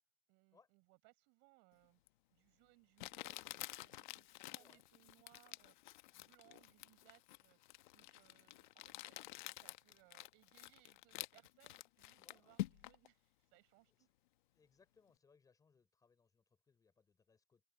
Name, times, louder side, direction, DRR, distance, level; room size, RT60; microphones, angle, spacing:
voice 1, 0.3-2.0 2.3-14.1, right 28 dB, 35° right, 5.7 m, -70 dB
Crumpling crinkling, 2.1-2.2 3.0-13.1, left 17 dB, 40° left, 1.2 m, -49 dB
voice 2, 14.5-17.6, left 5 dB, 10° left, 5.1 m, -72 dB
hypercardioid pair, 150°, 35 cm